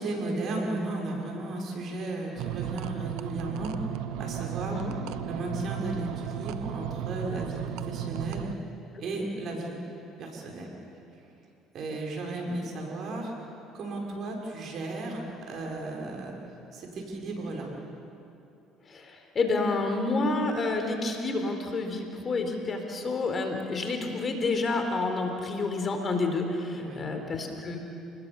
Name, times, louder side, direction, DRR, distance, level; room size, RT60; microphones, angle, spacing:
voice 1, 0.0-3.9 4.2-4.8 5.2-8.5 9.0-9.8 10.2-10.7 11.7-13.3 13.7-16.4 16.7-17.7 26.7-27.1, right 2 dB, 60° right, 0 dB, 6.1 m, -34 dB
sound 1, 2.4-8.5, right 10 dB, 80° right, 0.9 m, -35 dB
voice 2, 18.9-27.8, left 3 dB, 40° left, 4 dB, 4.0 m, -29 dB
29.5 x 20.5 x 7.2 m, 2.7 s
supercardioid pair, 80°, 0 cm